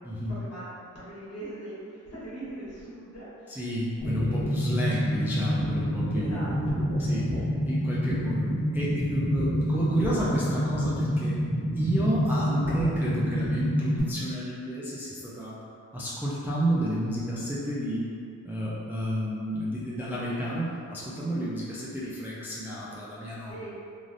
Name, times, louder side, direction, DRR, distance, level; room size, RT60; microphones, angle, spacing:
voice 1, 0.0-3.5 4.2-4.5 6.1-7.5 23.5-23.7, right 1 dB, 50° left, -9 dB, 1.2 m, -41 dB
voice 2, 3.5-6.5 7.0-7.2 7.6-8.5 8.7-11.4 11.8-15.6 15.9-18.1 18.4-23.7, equal, 5° right, -8 dB, 0.3 m, -31 dB
sound 1, 4.0-14.0, equal, 10° left, 1.4 m, -27 dB
3.2 x 2.5 x 2.5 m, 2.4 s
wide cardioid pair, 125°, 31 cm